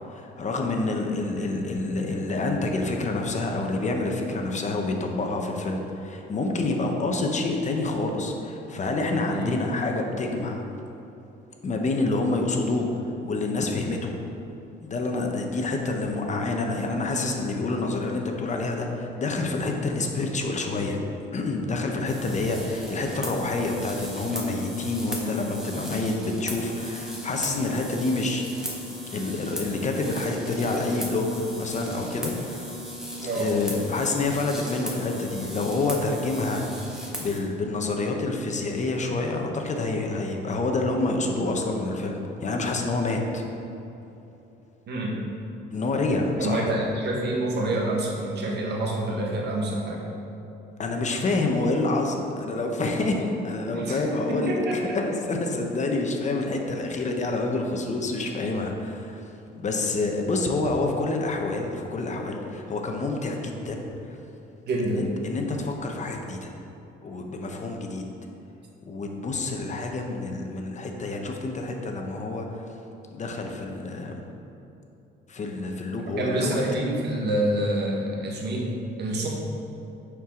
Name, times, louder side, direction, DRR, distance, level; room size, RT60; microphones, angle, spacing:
voice 1, 0.1-10.6 11.6-14.2 14.8-21.0 21.3-28.4 29.1-32.7 33.3-43.4 45.7-46.7 50.8-64.2 64.9-66.5 67.0-68.1 68.9-72.7 73.1-74.2 75.3-76.6, left 2 dB, 40° left, 2 dB, 0.9 m, -28 dB
sound 1, 22.0-37.4, equal, 5° right, 1.5 m, -37 dB
voice 2, 33.2-33.5 44.9-45.2 46.4-50.0 53.7-54.0 54.3-55.0 64.7-65.1 76.1-78.7 79.0-79.3, right 1 dB, 65° right, -1 dB, 1.5 m, -27 dB
9.0 x 4.7 x 3.8 m, 3.0 s
cardioid pair, 85°, 19 cm